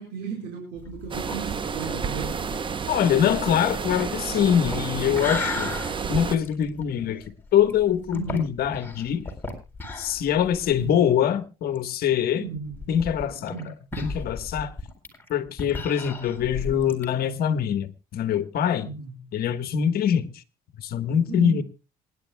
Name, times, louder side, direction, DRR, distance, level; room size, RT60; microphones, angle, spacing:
voice 1, 0.0-2.6 8.1-8.5 10.8-11.0 12.3-12.8 13.5-13.6 18.8-19.2 21.3-21.6, right 6 dB, 85° right, 4.5 m, -35 dB
sound 1, 0.8-11.0 11.3-11.4 11.7-11.8 12.6-17.1, left 2 dB, 10° left, 4.1 m, -36 dB
sound 2, 1.1-6.4, right 5 dB, 30° right, 0.8 m, -30 dB
voice 2, 2.9-5.8 6.1-7.2 7.5-9.3 10.0-12.4 12.9-14.7 15.3-18.9 19.3-20.4 20.8-21.6, left 9 dB, 65° left, 1.4 m, -24 dB
27.0 x 10.5 x 2.3 m
cardioid pair, 110°, 17 cm